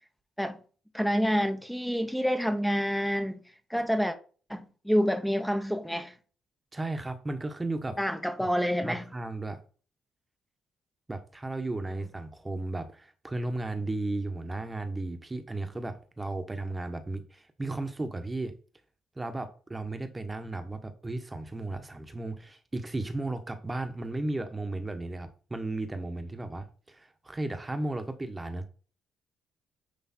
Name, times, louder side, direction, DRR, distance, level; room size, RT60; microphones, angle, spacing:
voice 1, 0.9-3.4 3.7-4.2 4.5-6.2 8.0-9.0, equal, ahead, 0.8 m, -28 dB
voice 2, 6.7-8.0 8.8-9.6 11.1-18.5 19.2-28.7, right 2 dB, 20° right, 1.1 m, -35 dB
9.7 x 3.3 x 4.3 m
cardioid pair, 90°, 0 cm